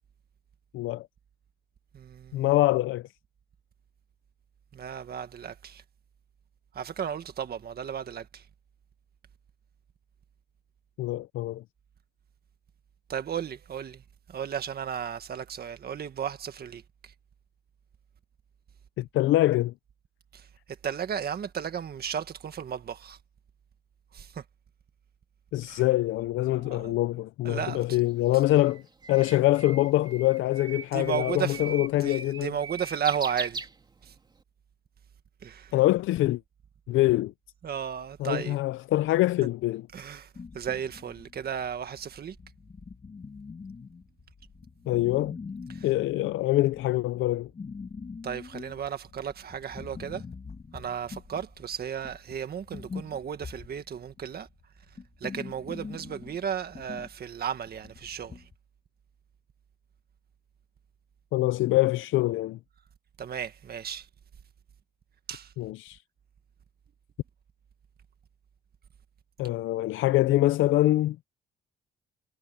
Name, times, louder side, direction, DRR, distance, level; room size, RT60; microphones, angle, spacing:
voice 1, 0.7-1.1 2.3-3.1 11.0-11.6 19.0-19.7 25.5-28.8 29.1-32.5 35.7-36.4 36.9-37.3 38.2-39.9 44.9-45.4 45.8-47.5 61.3-62.6 65.6-66.0 69.4-71.2, left 16 dB, 80° left, 0.5 m, -24 dB
voice 2, 1.9-2.5 4.7-5.8 6.7-8.4 13.1-14.0 14.3-17.1 20.3-20.5 20.8-23.2 24.1-24.4 25.7-25.8 26.6-27.0 27.4-28.0 30.9-33.7 34.0-34.1 35.4-35.7 37.6-38.6 39.9-40.3 40.5-42.4 45.7-45.9 48.2-50.2 50.7-54.5 55.2-58.4 63.2-64.1 65.3-65.5, right 8 dB, 50° right, 1.7 m, -34 dB
Bird, 28.1-34.3, right 4 dB, 20° right, 3.0 m, -39 dB
sound 1, 40.3-58.6, left 5 dB, 35° left, 1.9 m, -44 dB
cardioid pair, 90°, 20 cm